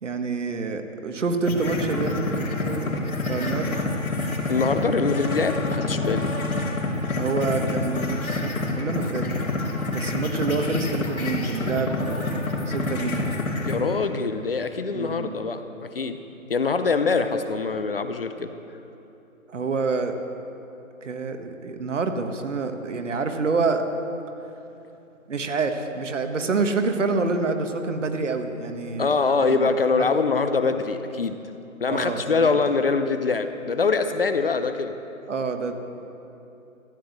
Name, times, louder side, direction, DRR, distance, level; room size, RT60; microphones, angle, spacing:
voice 1, 0.0-3.8 7.1-9.4 9.9-13.3 14.9-15.4 19.5-20.2 21.0-23.8 25.3-29.1 29.5-29.7 30.0-30.1 31.9-32.6 35.3-35.7, right 4 dB, 60° right, 6 dB, 1.4 m, -27 dB
sound 1, 1.5-13.8, left 2 dB, 80° left, 3.0 m, -27 dB
voice 2, 4.5-6.3 13.6-16.2 16.5-18.5 29.0-31.4 31.8-34.9, left 4 dB, 45° left, 9 dB, 0.6 m, -24 dB
14.0 x 7.9 x 8.0 m, 2.9 s
hypercardioid pair, 160°, 41 cm